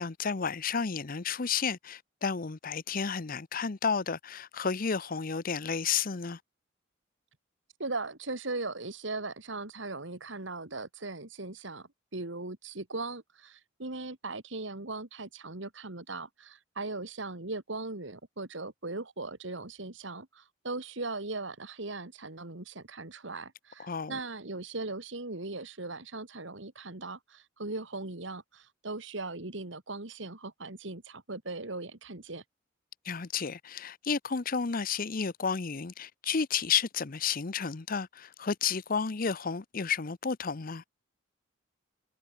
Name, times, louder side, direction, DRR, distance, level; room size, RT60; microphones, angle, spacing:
voice 1, 0.0-6.4 23.9-24.2 33.0-40.8, left 6 dB, 45° left, 0.7 m, -32 dB
voice 2, 7.8-32.4, right 3 dB, 65° right, 2.2 m, -39 dB
head